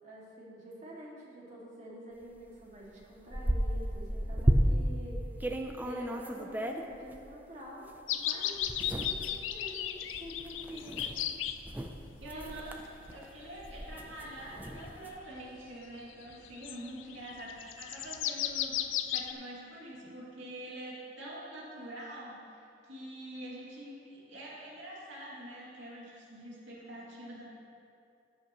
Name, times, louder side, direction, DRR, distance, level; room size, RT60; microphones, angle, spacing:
voice 1, 0.0-5.2 5.8-11.1 20.0-20.1, equal, 40° right, -5 dB, 2.1 m, -47 dB
sound 1, 2.4-2.5 2.8-5.0 5.4-7.2 7.9-8.0 8.6-15.2, right 1 dB, 10° right, 0.5 m, -33 dB
sound 2, 8.1-11.6 12.3-13.5 14.0-15.0 15.4-15.5 16.2-19.3, left 10 dB, 90° left, 0.4 m, -35 dB
voice 2, 12.2-27.4, right 1 dB, 80° right, -6 dB, 2.4 m, -45 dB
16.0 x 8.0 x 3.0 m, 2.5 s
head